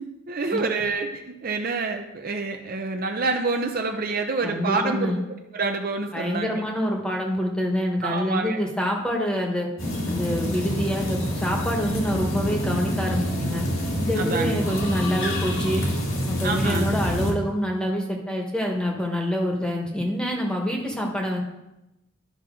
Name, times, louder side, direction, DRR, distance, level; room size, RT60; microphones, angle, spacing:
voice 1, 0.0-5.1 5.5-6.6 8.0-8.6 14.2-14.6 16.4-16.9, right 3 dB, 45° right, 4 dB, 0.6 m, -27 dB
voice 2, 4.4-5.2 6.1-9.7 10.0-13.6 14.0-15.8 16.3-21.4, equal, 5° left, 0 dB, 1.1 m, -26 dB
sound 1, 9.8-17.3, equal, 75° left, 2.0 m, -27 dB
11.5 x 5.7 x 3.8 m, 0.92 s
head